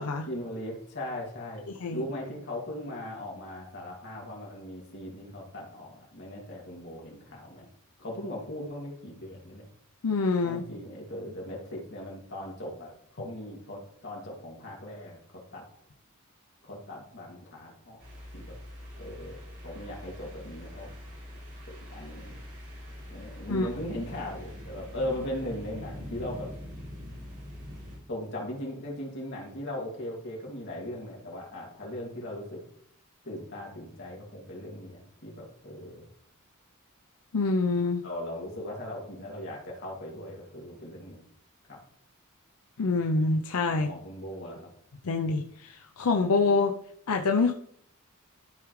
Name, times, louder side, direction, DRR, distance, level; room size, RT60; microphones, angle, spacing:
voice 1, 0.3-1.6 1.9-7.7 8.0-9.6 10.4-15.2 15.5-15.6 16.6-18.0 18.3-18.6 19.0-21.0 21.7-22.4 23.1-26.5 28.1-32.6 33.2-36.0 38.0-41.2 41.7-41.8 43.7-44.7, left 1 dB, 55° left, -2 dB, 2.6 m, -39 dB
voice 2, 10.0-10.6 23.5-23.7 37.3-38.0 42.8-43.9 45.0-46.7 47.1-47.5, left 3 dB, 90° left, 3 dB, 0.6 m, -26 dB
sound 1, 18.0-28.0, left 1 dB, 60° right, 3.6 m, -43 dB
12.5 x 4.9 x 3.2 m, 0.67 s
head